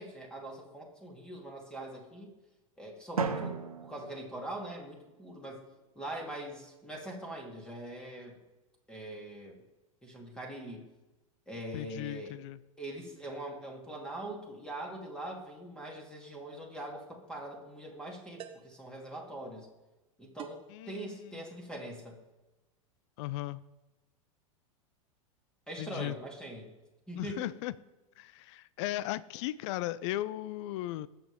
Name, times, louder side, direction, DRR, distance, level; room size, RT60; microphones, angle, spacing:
voice 1, 0.0-2.3 2.8-5.6 5.9-8.4 8.9-9.6 10.0-10.8 11.5-12.4 12.8-19.7 20.2-20.6 20.9-22.2 25.7-26.7 27.1-27.5, right 1 dB, 5° left, -1 dB, 3.1 m, -42 dB
Drum, 3.2-5.1, right 5 dB, 90° right, 1.2 m, -36 dB
voice 2, 11.7-12.6 20.7-21.4 23.2-23.6 25.8-26.2 27.2-27.7 28.2-31.1, left 15 dB, 55° left, 18 dB, 0.5 m, -37 dB
sound 1, 16.8-17.0 18.4-18.8 20.4-20.8, right 10 dB, 30° right, 1.1 m, -47 dB
21.0 x 7.5 x 3.6 m, 1.1 s
hypercardioid pair, 95°, 18 cm